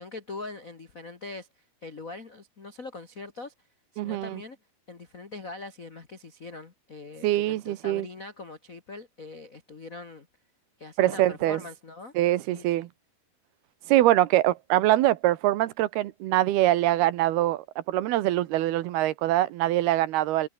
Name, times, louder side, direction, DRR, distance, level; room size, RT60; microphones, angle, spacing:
voice 1, 0.0-3.7 3.9-4.6 4.9-10.3 10.8-12.9, left 3 dB, 60° left, 0.8 m, -42 dB
voice 2, 4.0-4.4 7.2-8.1 11.0-11.6 12.2-12.9 13.9-20.5, right 15 dB, 85° right, 3.1 m, -23 dB
omnidirectional pair, 4.4 m